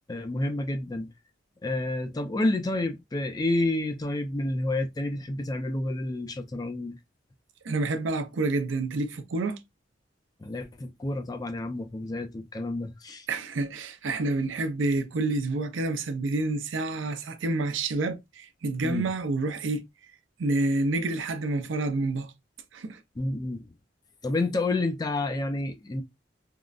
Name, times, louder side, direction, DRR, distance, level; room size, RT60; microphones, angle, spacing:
voice 1, 0.1-1.1 1.6-7.0 10.4-13.3 18.8-19.1 23.2-23.7 24.2-26.0, left 2 dB, 20° left, 0.4 m, -29 dB
voice 2, 7.6-9.6 13.3-19.8 20.4-22.3 22.7-23.0, right 2 dB, 85° right, 0.5 m, -28 dB
3.7 x 2.0 x 2.3 m
head